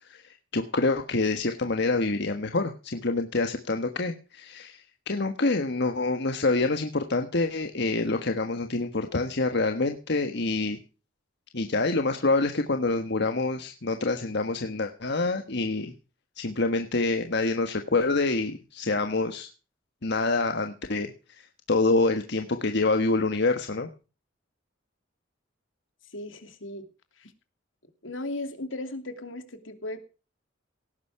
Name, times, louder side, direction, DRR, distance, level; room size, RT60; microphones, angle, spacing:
voice 1, 0.0-10.8 11.5-15.9 16.4-19.5 20.0-23.9, left 3 dB, 60° left, 6 dB, 1.4 m, -26 dB
voice 2, 26.1-26.8 27.2-27.3 28.0-30.1, left 2 dB, 80° left, 8 dB, 2.8 m, -36 dB
18.0 x 10.0 x 4.8 m, 0.34 s
head